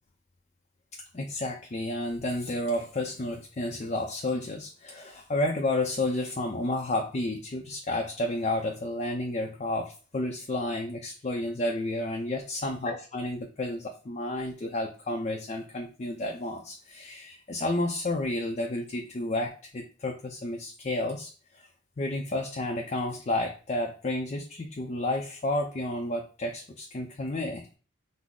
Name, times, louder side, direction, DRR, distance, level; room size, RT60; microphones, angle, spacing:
voice 1, 1.1-21.7 22.0-27.7, left 1 dB, 35° left, 2 dB, 0.4 m, -31 dB
6.0 x 2.0 x 3.6 m, 0.37 s
head